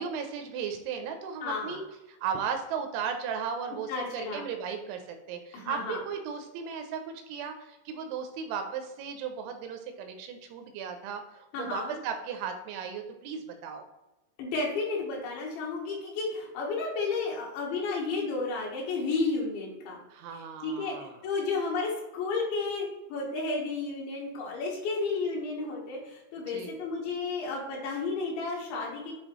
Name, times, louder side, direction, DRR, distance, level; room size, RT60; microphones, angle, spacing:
voice 1, 0.0-1.8 2.2-7.0 7.3-13.9 20.1-21.2 26.5-26.7, right 6 dB, 80° right, 5 dB, 2.8 m, -36 dB
voice 2, 1.4-1.8 3.9-4.5 5.5-6.0 11.5-12.0 14.4-20.0 20.3-29.1, left 3 dB, 75° left, -2 dB, 3.3 m, -32 dB
9.8 x 3.4 x 3.0 m, 0.99 s
omnidirectional pair, 5.6 m